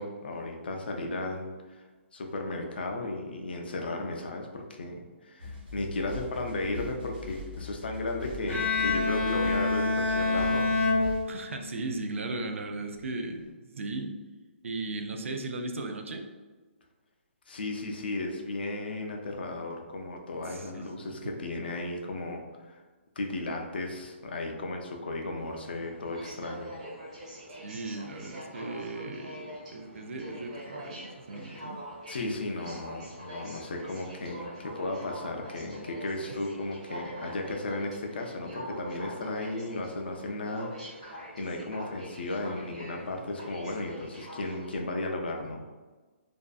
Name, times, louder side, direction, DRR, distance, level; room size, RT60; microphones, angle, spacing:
voice 1, 0.0-1.8 2.1-10.7 17.5-22.8 23.2-26.7 31.5-31.6 32.1-40.7 41.0-45.6, left 2 dB, 50° left, 2 dB, 0.4 m, -35 dB
sound 1, 5.4-11.2, left 2 dB, 45° right, 1.1 m, -41 dB
Bowed string instrument, 8.5-11.8, left 3 dB, 85° left, 0.7 m, -27 dB
voice 2, 11.3-14.1 14.6-16.3 20.4-21.2 27.5-31.8, right 2 dB, 85° right, 5 dB, 0.4 m, -37 dB
Aircraft, 25.4-44.8, equal, 30° right, 0.6 m, -44 dB
2.5 x 2.4 x 2.2 m, 1.3 s
hypercardioid pair, 180°, 7 cm